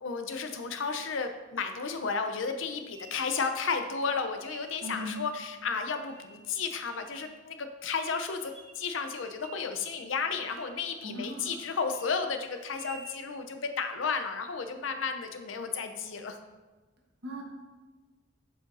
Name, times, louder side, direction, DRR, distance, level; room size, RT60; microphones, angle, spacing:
voice 1, 0.0-16.4, left 5 dB, 80° left, 7 dB, 0.6 m, -33 dB
sound 1, 2.9-3.7 4.4-5.2 5.7-6.4 6.9-7.4 7.8-7.9 8.4-8.9 9.2-9.7 9.9-10.1 10.4-10.8 11.2-11.6 11.9-12.1 12.6-13.2, right 3 dB, 85° right, 1.4 m, -51 dB
voice 2, 4.8-5.2 11.0-11.5 17.2-17.4, equal, 60° right, 0 dB, 1.2 m, -38 dB
7.7 x 5.0 x 2.6 m, 1.2 s
head